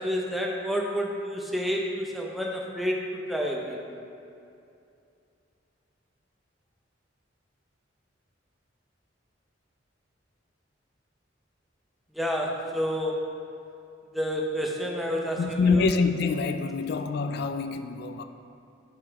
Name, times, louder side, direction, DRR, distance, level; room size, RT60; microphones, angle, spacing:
voice 1, 0.0-3.8 12.1-13.4 14.1-15.9, equal, ahead, 0.5 m, -29 dB
voice 2, 15.2-18.2, left 4 dB, 55° left, 0.3 m, -26 dB
6.4 x 5.1 x 3.4 m
head